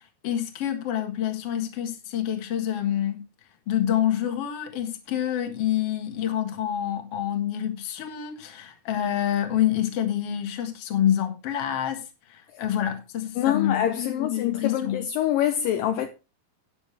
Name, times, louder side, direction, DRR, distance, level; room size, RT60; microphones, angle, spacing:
voice 1, 0.2-3.2 3.7-12.0 12.3-15.0, left 10 dB, 50° left, 2.2 m, -27 dB
voice 2, 13.4-16.1, left 11 dB, 75° left, 2.3 m, -25 dB
12.0 x 9.5 x 3.3 m
omnidirectional pair, 4.3 m